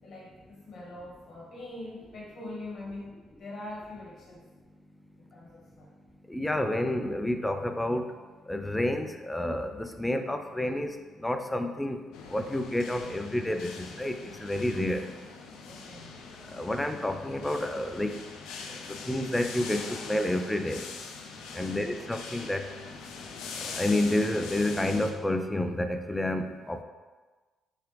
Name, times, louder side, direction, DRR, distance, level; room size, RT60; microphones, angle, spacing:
voice 1, 0.0-4.5 5.2-5.9 15.6-16.1 21.5-22.1, left 2 dB, 65° left, -6 dB, 1.1 m, -43 dB
voice 2, 6.3-8.1 8.5-10.9 11.2-12.0 12.3-14.1 14.4-15.0 16.5-18.1 19.1-19.8 20.1-20.8 21.6-22.6 23.8-26.8, left 1 dB, 10° left, 6 dB, 0.4 m, -29 dB
sound 1, 12.1-25.1, left 4 dB, 85° left, 0.4 m, -42 dB
3.6 x 3.2 x 3.2 m, 1.3 s
supercardioid pair, 65°, 0 cm